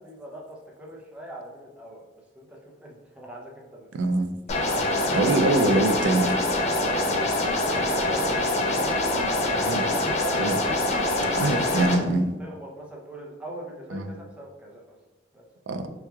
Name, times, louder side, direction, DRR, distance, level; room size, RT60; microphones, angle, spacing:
voice 1, 0.0-2.1 2.4-4.1 6.8-11.4 12.4-15.0 15.3-15.4, right 1 dB, 5° right, -2 dB, 0.6 m, -42 dB
voice 2, 3.9-4.4 5.1-6.3 9.7-9.8 10.4-10.6 11.4-12.3 13.9-14.0 15.7-15.9, right 2 dB, 90° right, 7 dB, 0.4 m, -23 dB
sound 1, 4.5-11.9, left 2 dB, 40° left, 0.5 m, -24 dB
3.5 x 3.1 x 2.3 m, 1.1 s
head